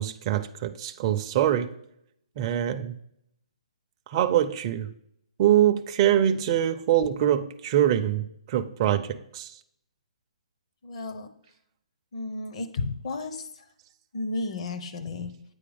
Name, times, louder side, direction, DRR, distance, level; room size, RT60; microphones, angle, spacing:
voice 1, 0.0-1.7 2.4-3.0 4.1-4.9 5.4-9.5, right 11 dB, 35° right, 6 dB, 0.5 m, -24 dB
voice 2, 10.8-11.3 12.1-13.6 14.1-15.3, left 3 dB, 55° left, 9 dB, 0.9 m, -33 dB
8.6 x 4.8 x 3.4 m, 0.74 s
hypercardioid pair, 140°, 4 cm